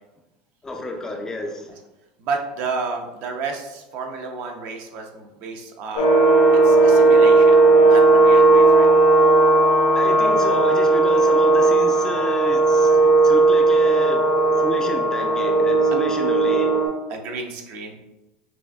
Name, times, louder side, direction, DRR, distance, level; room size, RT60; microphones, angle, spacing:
voice 1, 0.6-1.8 9.9-14.3 14.6-16.8, left 2 dB, 15° left, 2 dB, 0.4 m, -31 dB
voice 2, 2.2-6.1 6.6-8.9 15.9-16.0 17.1-18.0, right 4 dB, 55° right, 2 dB, 0.7 m, -31 dB
sound 1, 6.0-16.9, right 3 dB, 80° left, 1.2 m, -16 dB
6.0 x 2.5 x 2.3 m, 1.0 s
supercardioid pair, 130°, 4 cm